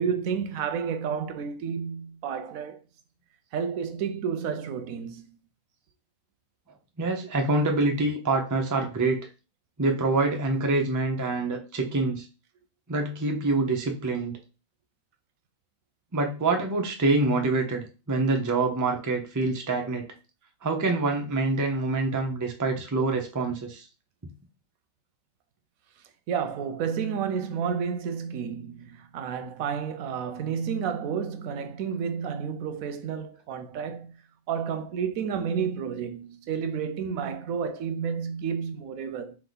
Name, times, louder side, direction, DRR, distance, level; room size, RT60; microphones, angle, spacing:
voice 1, 0.0-2.8 3.5-5.2 26.3-34.2 34.5-39.4, right 7 dB, 90° right, 1.0 m, -31 dB
voice 2, 7.0-9.2 9.8-12.3 12.9-14.4 16.1-20.1 20.6-23.9, right 3 dB, 25° right, 0.4 m, -26 dB
3.5 x 3.0 x 3.9 m
omnidirectional pair, 1.4 m